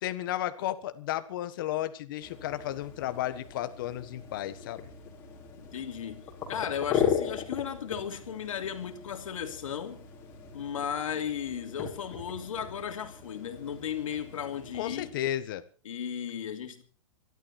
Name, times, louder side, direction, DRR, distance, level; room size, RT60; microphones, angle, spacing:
voice 1, 0.0-4.9 14.7-15.6, left 13 dB, 40° left, 1.5 m, -33 dB
sound 1, 2.2-15.1, left 8 dB, 15° left, 4.9 m, -37 dB
voice 2, 5.6-10.0 10.5-15.2 15.8-16.8, left 8 dB, 75° left, 3.2 m, -35 dB
25.0 x 12.5 x 4.4 m
hypercardioid pair, 170°, 17 cm